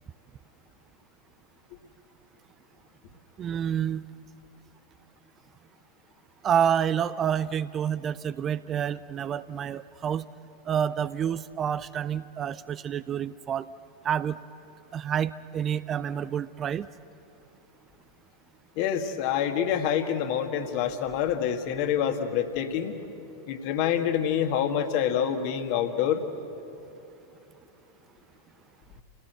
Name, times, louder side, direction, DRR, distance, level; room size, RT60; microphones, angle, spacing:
voice 1, 3.4-4.0 6.4-10.2 10.7-13.7 14.0-14.4 14.9-16.9, right 8 dB, 25° right, 16 dB, 0.5 m, -28 dB
voice 2, 18.8-23.0 23.5-26.3, left 9 dB, 45° left, 6 dB, 1.9 m, -27 dB
29.5 x 17.0 x 8.1 m, 2.9 s
figure-of-eight pair, 90°, 0 cm